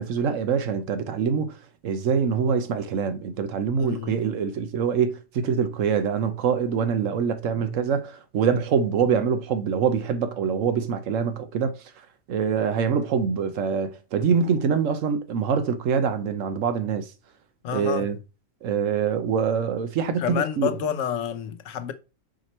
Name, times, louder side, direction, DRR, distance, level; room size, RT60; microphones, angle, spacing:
voice 1, 0.0-1.6 1.8-11.8 12.3-17.1 17.7-18.2 18.6-20.7, right 6 dB, 75° right, 1.1 m, -24 dB
voice 2, 3.8-4.2 7.5-7.7 17.6-18.1 20.2-21.9, left 9 dB, 70° left, 1.1 m, -29 dB
5.0 x 4.3 x 4.3 m
omnidirectional pair, 1.4 m